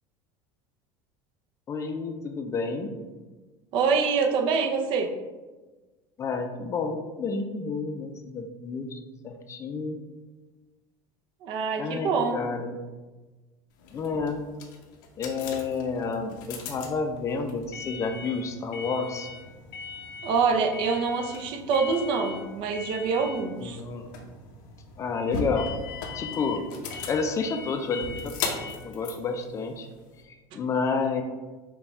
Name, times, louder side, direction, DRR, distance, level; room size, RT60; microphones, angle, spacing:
voice 1, 1.7-2.9 6.2-9.0 9.2-10.0 11.8-12.8 13.9-14.4 15.2-19.3 23.6-24.1 25.0-25.7 26.1-26.6 27.1-29.9 30.2-31.2, left 4 dB, 30° left, 5 dB, 0.5 m, -30 dB
voice 2, 3.7-5.1 11.4-12.4 20.2-23.8, right 5 dB, 55° right, 3 dB, 0.6 m, -25 dB
sound 1, 13.8-30.2, left 4 dB, 80° left, 0.8 m, -38 dB
5.5 x 2.3 x 4.2 m, 1.2 s
supercardioid pair, 125°, 10 cm